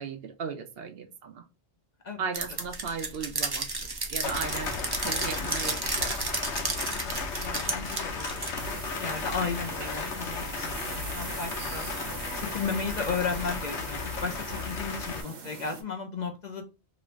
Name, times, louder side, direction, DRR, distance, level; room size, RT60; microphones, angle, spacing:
voice 1, 0.0-1.5 2.2-4.7 5.0-6.2, right 6 dB, 65° right, 7 dB, 0.7 m, -36 dB
sound 1, 2.3-8.6, right 3 dB, 30° right, 0.4 m, -32 dB
sound 2, 4.2-15.2, left 4 dB, 85° left, 1.1 m, -35 dB
voice 2, 6.9-8.4 8.7-11.9 12.3-16.7, left 5 dB, 50° left, 3 dB, 0.5 m, -34 dB
sound 3, 8.6-15.8, right 5 dB, 85° right, 1.1 m, -41 dB
3.0 x 2.5 x 3.0 m, 0.29 s
omnidirectional pair, 1.1 m